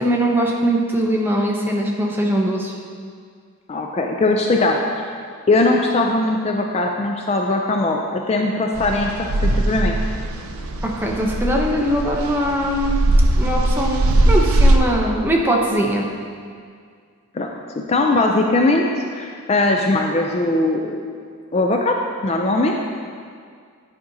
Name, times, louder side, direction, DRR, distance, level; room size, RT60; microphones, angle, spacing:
voice 1, 0.0-2.7 10.8-13.0 13.4-16.1, right 1 dB, 10° right, -1 dB, 0.6 m, -21 dB
voice 2, 3.7-4.8 5.5-9.3 9.7-9.9 17.3-17.5 17.9-18.9 19.1-21.0 21.5-22.0 22.2-22.8, left 2 dB, 30° left, 1 dB, 0.3 m, -19 dB
sound 1, 8.8-14.8, right 1 dB, 75° right, 0.5 m, -19 dB
10.5 x 5.1 x 2.7 m, 2.1 s
head